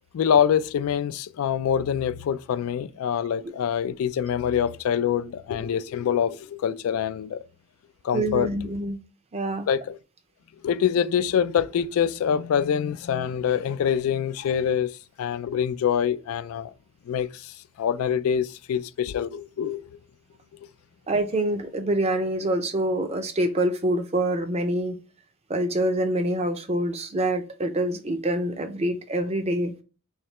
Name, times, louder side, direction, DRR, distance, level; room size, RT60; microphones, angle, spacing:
voice 1, 0.1-7.4 8.0-8.5 9.7-10.0 10.6-16.7 17.1-19.8, left 8 dB, 80° left, 0.3 m, -25 dB
voice 2, 8.1-9.0 9.3-9.7 21.1-25.0 25.5-29.7, right 1 dB, 30° right, 0.5 m, -26 dB
3.2 x 2.8 x 4.2 m
head